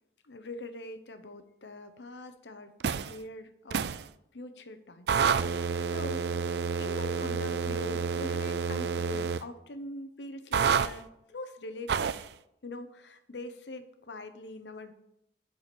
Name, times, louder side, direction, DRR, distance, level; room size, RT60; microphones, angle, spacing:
voice 1, 0.2-2.7 3.0-3.9 4.3-6.2 6.8-12.2 12.6-14.9, left 1 dB, 80° left, 9 dB, 0.9 m, -43 dB
sound 1, 2.8-3.2 3.7-4.0 5.1-9.4 10.5-10.9 11.9-12.3, right 6 dB, 65° right, 0.4 m, -29 dB
10.5 x 4.8 x 5.2 m, 0.81 s
head